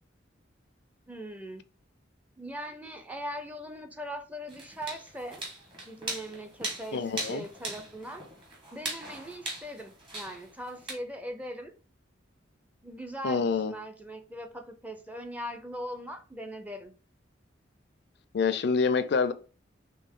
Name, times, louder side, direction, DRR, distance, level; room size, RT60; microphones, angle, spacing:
voice 1, 1.1-1.6 2.4-5.4 5.8-8.2 8.7-11.7 12.8-16.9, equal, 10° right, 0.5 m, -40 dB
sound 1, 4.5-10.9, right 2 dB, 25° right, 1.3 m, -39 dB
voice 2, 6.9-7.4 13.2-13.7 18.3-19.3, left 5 dB, 60° left, 0.4 m, -26 dB
4.3 x 3.3 x 3.6 m
head